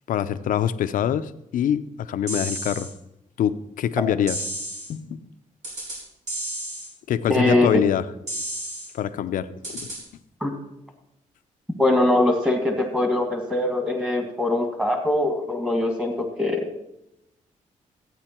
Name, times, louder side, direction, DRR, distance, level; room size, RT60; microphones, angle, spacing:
voice 1, 0.1-2.9 3.4-4.4 4.9-5.2 7.1-8.0 8.9-9.9, left 9 dB, 80° left, 11 dB, 0.7 m, -24 dB
sound 1, 2.3-2.9 4.3-4.9 5.6-6.0 6.3-6.9 8.3-8.9 9.6-10.0, right 1 dB, 60° right, 5.1 m, -31 dB
voice 2, 7.3-7.7 10.4-10.5 11.8-16.7, left 1 dB, 5° right, 3 dB, 2.0 m, -22 dB
14.5 x 9.2 x 4.4 m, 0.86 s
cardioid pair, 140°, 14 cm